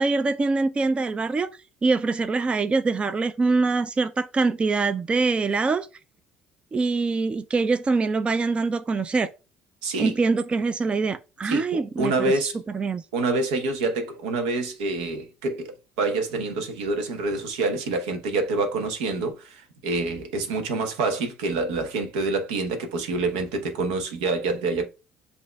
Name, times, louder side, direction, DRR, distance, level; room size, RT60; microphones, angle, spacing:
voice 1, 0.0-1.5 1.8-5.9 6.7-9.3 10.0-12.1 12.7-13.0, right 3 dB, 25° right, 0.4 m, -24 dB
voice 2, 9.8-10.1 11.4-12.6 13.1-24.9, right 3 dB, 80° right, 0.9 m, -27 dB
7.6 x 2.8 x 2.3 m
hypercardioid pair, 65°, 4 cm